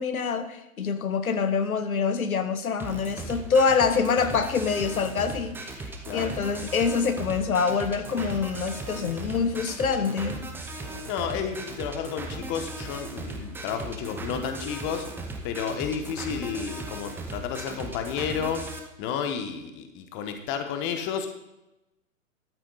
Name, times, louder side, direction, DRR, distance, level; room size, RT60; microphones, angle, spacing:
voice 1, 0.0-5.8 6.1-10.4, left 5 dB, 85° left, 10 dB, 1.2 m, -25 dB
sound 1, 2.8-18.8, right 2 dB, 5° right, 0.7 m, -37 dB
voice 2, 11.1-15.1 15.4-18.7 19.0-21.3, left 7 dB, 25° left, 6 dB, 1.2 m, -31 dB
12.5 x 8.7 x 4.1 m, 0.94 s
hypercardioid pair, 135°, 41 cm